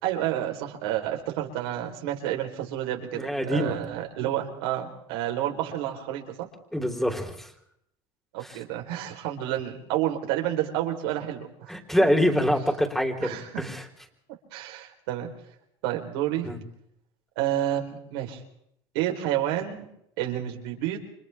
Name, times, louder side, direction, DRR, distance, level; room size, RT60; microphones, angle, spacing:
voice 1, 0.0-6.5 8.3-11.7 13.2-13.6 14.5-15.3 15.8-16.5 17.4-18.4 18.9-19.8 20.2-21.0, right 12 dB, 80° right, 2 dB, 4.0 m, -30 dB
voice 2, 3.1-3.8 6.7-7.5 8.4-8.6 11.7-13.8 16.4-16.6, equal, ahead, 3 dB, 3.9 m, -25 dB
29.5 x 25.0 x 3.5 m, 0.75 s
supercardioid pair, 100°, 12 cm